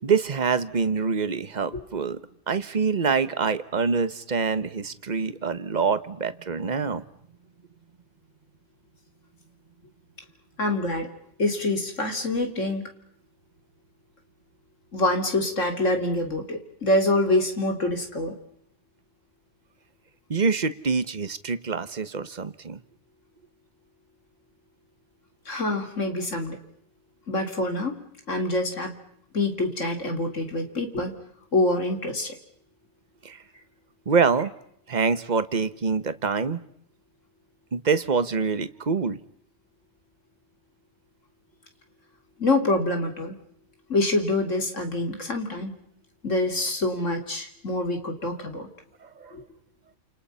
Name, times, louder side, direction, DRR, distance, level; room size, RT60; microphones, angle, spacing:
voice 1, 0.0-2.2 2.5-7.0 20.3-22.8 33.2-33.4 34.1-34.5 34.9-36.6 37.7-39.2 49.0-49.3, right 5 dB, 40° right, 13 dB, 1.2 m, -25 dB
voice 2, 10.6-11.1 11.4-12.8 14.9-18.3 25.5-26.6 27.3-28.0 28.3-29.0 29.3-31.2 31.5-32.4 42.4-43.4 43.9-45.7 46.2-48.7 49.3-49.4, left 2 dB, 80° left, 5 dB, 3.7 m, -26 dB
29.5 x 28.5 x 5.7 m, 0.70 s
omnidirectional pair, 1.3 m